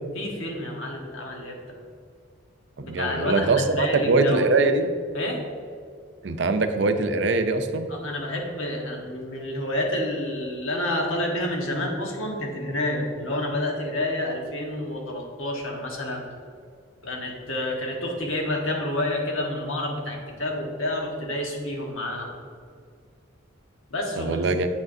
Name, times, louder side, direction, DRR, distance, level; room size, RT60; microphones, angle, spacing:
voice 1, 0.1-1.8 2.8-4.6 5.1-5.4 7.9-16.2 17.0-22.3 23.9-24.4, left 1 dB, 85° left, 0 dB, 1.3 m, -29 dB
voice 2, 2.8-4.9 6.2-7.9 24.2-24.7, right 3 dB, 60° right, 8 dB, 0.5 m, -22 dB
8.5 x 6.3 x 2.7 m, 2.2 s
head